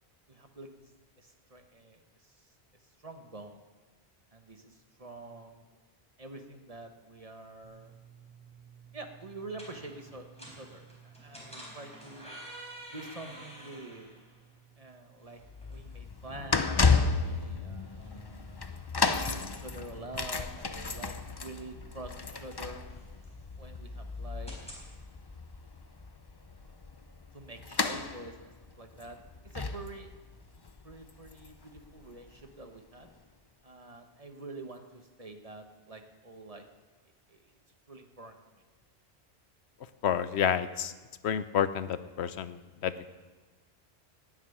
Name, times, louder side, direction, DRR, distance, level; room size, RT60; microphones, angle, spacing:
voice 1, 0.3-2.5 3.0-3.6 4.3-5.6 6.2-7.9 8.9-12.3 12.9-14.1 14.8-15.4 15.7-18.6 19.0-22.8 23.6-24.5 27.3-28.5 28.8-29.2 29.5-30.1 30.8-33.1 33.6-36.6 37.3-37.5 37.9-38.6, right 2 dB, 35° right, 5 dB, 1.3 m, -46 dB
sound 1, 7.6-24.9, right 1 dB, 5° left, 4.3 m, -52 dB
sound 2, 15.4-32.4 33.1-33.2, left 4 dB, 30° left, 0.6 m, -33 dB
voice 2, 40.0-40.9 41.2-43.1, left 8 dB, 80° left, 13 dB, 0.9 m, -30 dB
16.5 x 7.4 x 9.9 m, 1.3 s
omnidirectional pair, 1.1 m